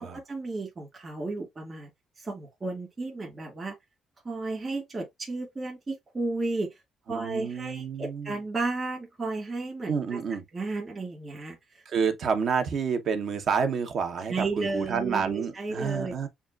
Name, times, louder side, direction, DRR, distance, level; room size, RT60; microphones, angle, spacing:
voice 1, 0.0-1.9 2.2-3.7 4.2-6.7 7.1-10.2 10.5-11.8 14.3-16.1, right 3 dB, 35° right, 2.2 m, -33 dB
voice 2, 7.1-8.4 9.9-10.4 11.9-16.3, right 6 dB, 65° right, 0.9 m, -29 dB
7.0 x 2.4 x 2.4 m
cardioid pair, 90°, 0 cm